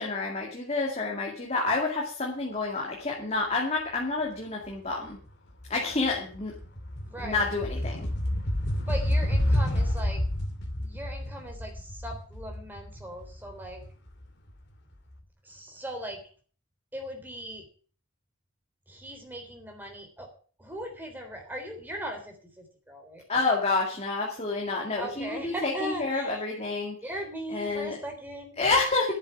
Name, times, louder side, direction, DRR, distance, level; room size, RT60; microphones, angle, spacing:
voice 1, 0.0-5.2 5.7-6.5 7.2-8.1 23.3-27.0 27.5-28.0 28.6-29.1, left 3 dB, 30° left, -1 dB, 2.4 m, -29 dB
sound 1, 5.0-5.3 5.6-14.5, left 1 dB, 55° left, 2.4 m, -29 dB
voice 2, 7.0-7.5 8.9-10.2 10.8-13.8 15.4-16.2 16.9-17.7 18.9-20.3 20.6-23.4 25.0-26.4 27.0-28.6, right 1 dB, 10° right, 3 dB, 3.5 m, -39 dB
11.0 x 7.4 x 8.3 m, 0.42 s
head